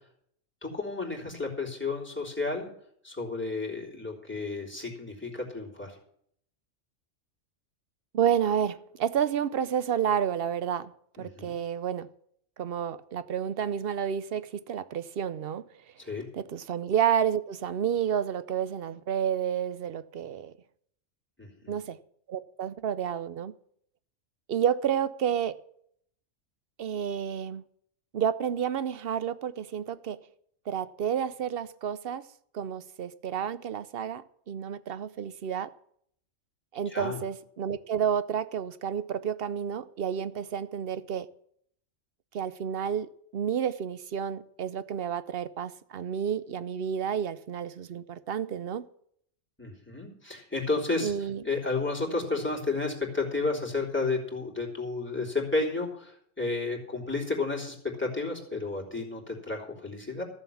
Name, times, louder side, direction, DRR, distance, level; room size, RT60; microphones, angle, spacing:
voice 1, 0.6-2.7 3.0-6.0 11.2-11.6 16.0-16.3 21.4-21.7 36.8-37.2 49.6-51.1 51.4-60.2, left 3 dB, 10° left, 3.3 m, -32 dB
voice 2, 8.1-10.9 11.2-12.1 12.6-15.6 16.3-20.5 21.7-22.0 22.3-23.5 24.5-25.6 26.8-27.6 28.1-30.2 30.7-32.2 32.5-35.7 36.7-41.3 42.3-48.9 51.0-51.4, right 8 dB, 55° right, 0.8 m, -30 dB
14.0 x 7.4 x 7.1 m
omnidirectional pair, 1.3 m